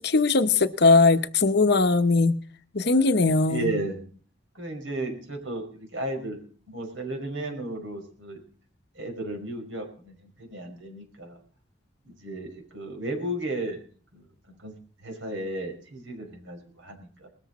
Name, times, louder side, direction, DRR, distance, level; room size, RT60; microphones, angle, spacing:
voice 1, 0.1-2.4 2.7-3.8, left 3 dB, 55° left, 0.9 m, -20 dB
voice 2, 3.5-4.0 4.5-6.4 6.7-8.4 8.9-11.4 12.0-13.8 14.1-14.7 15.0-17.3, right 2 dB, 75° right, 5.6 m, -34 dB
20.5 x 13.5 x 4.2 m
head